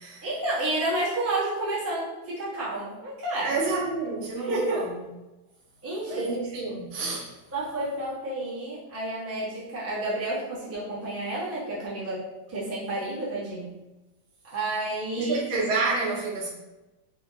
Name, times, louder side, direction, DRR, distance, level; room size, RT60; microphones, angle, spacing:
voice 1, 0.2-3.6 4.4-4.9 5.8-6.3 7.5-13.8 14.5-15.4, right 2 dB, 20° right, -9 dB, 0.4 m, -30 dB
voice 2, 3.4-5.0 6.1-7.3 15.1-16.5, right 3 dB, 80° right, -3 dB, 1.6 m, -29 dB
4.1 x 2.1 x 2.8 m, 1.0 s
omnidirectional pair, 2.1 m